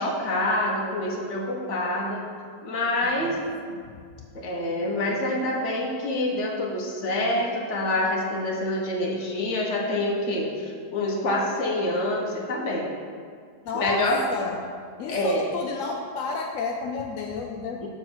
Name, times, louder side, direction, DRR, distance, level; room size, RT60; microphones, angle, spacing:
voice 1, 0.0-2.2 2.6-3.5 4.3-12.9 13.7-14.2 15.1-15.5 17.8-17.9, left 1 dB, 45° left, -2 dB, 1.2 m, -26 dB
voice 2, 3.0-3.4 3.7-3.9 4.2-4.3 13.6-14.0 14.3-14.6 15.0-17.9, left 4 dB, 75° left, 1 dB, 0.7 m, -32 dB
6.8 x 3.8 x 6.2 m, 2.1 s
omnidirectional pair, 2.0 m